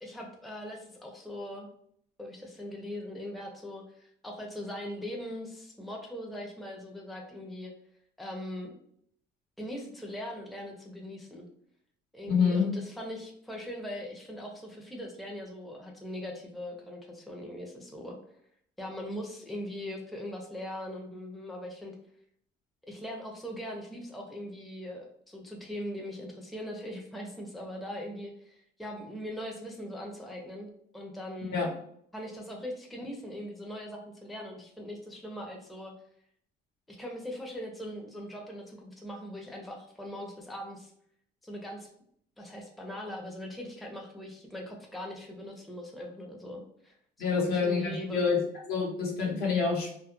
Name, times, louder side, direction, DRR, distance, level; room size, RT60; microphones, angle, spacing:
voice 1, 0.0-1.7 2.2-7.7 8.2-8.7 9.6-11.5 12.1-18.2 18.8-21.9 22.9-31.6 32.1-35.9 36.9-40.9 41.4-41.9 42.4-46.9 47.4-48.2, left 1 dB, ahead, 0 dB, 0.4 m, -40 dB
voice 2, 12.3-12.7 31.5-31.7 47.2-48.4 48.7-49.9, left 5 dB, 70° left, -1 dB, 0.9 m, -27 dB
2.2 x 2.0 x 2.9 m, 0.67 s
cardioid pair, 110°, 17 cm